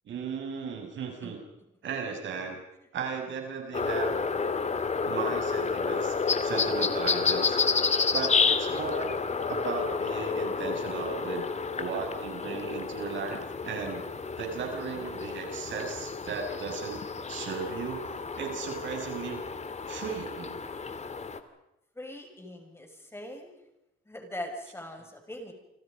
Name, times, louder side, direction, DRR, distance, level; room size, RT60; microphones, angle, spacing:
voice 1, 0.1-1.4 1.8-2.6 2.9-4.2 5.0-6.2 6.4-7.6 8.1-9.1 9.5-11.4 11.8-14.0 14.4-17.0 17.3-18.0 18.3-19.4 19.9-20.7, right 5 dB, 70° right, 3 dB, 7.0 m, -36 dB
sound 1, 3.7-21.4, left 5 dB, 35° left, 2.4 m, -30 dB
voice 2, 21.9-23.5 24.0-25.5, left 1 dB, 10° left, 3 dB, 6.6 m, -41 dB
29.0 x 25.5 x 5.4 m, 0.90 s
cardioid pair, 90°, 20 cm